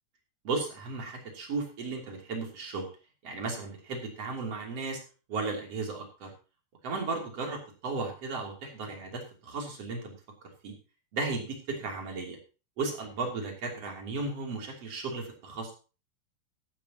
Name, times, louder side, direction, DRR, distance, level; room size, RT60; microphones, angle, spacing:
voice 1, 0.4-2.9 3.2-5.0 5.3-6.3 6.8-10.1 10.6-10.8 11.1-12.4 12.8-15.7, right 3 dB, 40° right, 1 dB, 3.8 m, -35 dB
14.0 x 12.5 x 3.0 m, 0.33 s
omnidirectional pair, 4.9 m